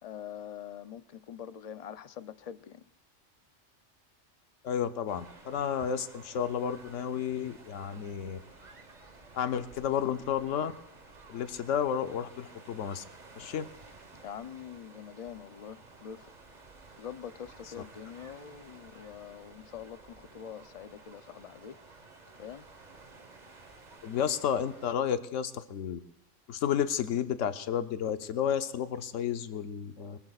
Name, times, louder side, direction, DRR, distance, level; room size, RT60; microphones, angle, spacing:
voice 1, 0.0-2.8 14.2-16.3 17.0-21.8 22.4-22.7, left 8 dB, 45° left, 12 dB, 0.5 m, -44 dB
voice 2, 4.6-8.4 9.3-10.7 11.3-13.0 13.3-13.6 24.0-26.0 26.5-30.2, left 8 dB, 80° left, 9 dB, 1.1 m, -31 dB
sound 1, 5.1-25.0, right 3 dB, 35° right, 1.3 m, -54 dB
24.0 x 20.0 x 2.4 m, 0.82 s
omnidirectional pair, 1.3 m